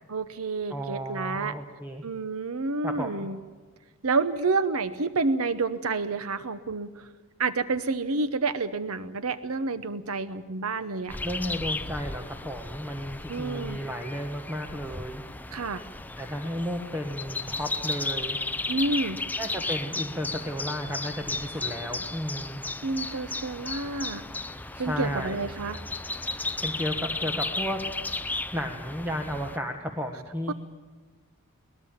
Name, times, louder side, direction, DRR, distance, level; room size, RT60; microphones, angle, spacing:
voice 1, 0.1-1.5 2.0-3.4 4.0-7.1 7.4-11.2 13.3-13.8 15.5-15.8 18.7-19.2 22.8-24.2 24.8-25.8 30.5-30.6, right 3 dB, 75° right, 13 dB, 0.8 m, -29 dB
voice 2, 0.7-2.0 2.8-3.3 11.2-15.2 16.2-18.4 19.4-22.6 24.7-25.4 26.6-27.8 28.5-30.5, equal, 10° right, 3 dB, 1.3 m, -33 dB
sound 1, 11.1-29.6, left 2 dB, 10° left, 0.5 m, -34 dB
21.5 x 20.0 x 7.3 m, 1.4 s
head